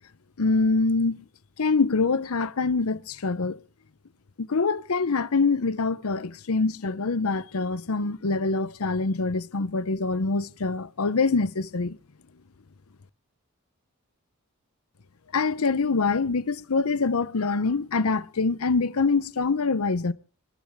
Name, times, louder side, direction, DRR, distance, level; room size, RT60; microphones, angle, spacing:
voice 1, 0.4-1.2 1.6-3.6 4.5-12.0 15.3-20.1, left 4 dB, 90° left, 0.8 m, -25 dB
25.5 x 10.5 x 3.6 m
head